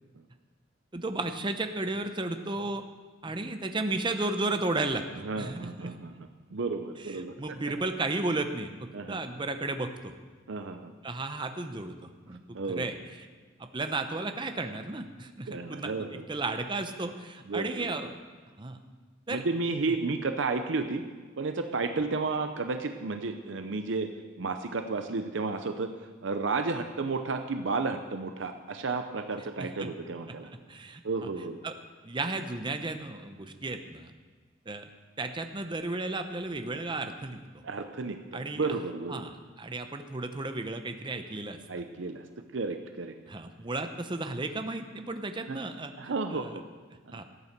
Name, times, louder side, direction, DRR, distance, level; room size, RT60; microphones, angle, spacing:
voice 1, 0.9-2.8 3.2-5.9 7.0-10.1 11.0-13.3 13.6-15.9 16.3-18.2 18.6-18.8 19.3-19.4 29.6-29.9 30.5-31.0 31.6-31.7 32.0-34.1 34.7-34.9 35.2-37.4 38.3-38.8 39.1-41.6 43.3-46.6 47.1-47.2, right 2 dB, 25° right, 7 dB, 0.7 m, -34 dB
voice 2, 5.2-7.3 8.9-9.2 10.5-10.9 12.5-12.9 15.5-16.2 17.0-17.1 17.5-18.0 19.3-21.0 21.4-24.1 24.4-26.0 26.2-30.5 31.0-31.6 37.6-39.2 41.7-42.3 42.5-43.2 45.5-45.6 46.0-46.6 47.1-47.2, right 3 dB, 70° right, 7 dB, 0.6 m, -32 dB
13.5 x 8.7 x 6.6 m, 1.4 s
head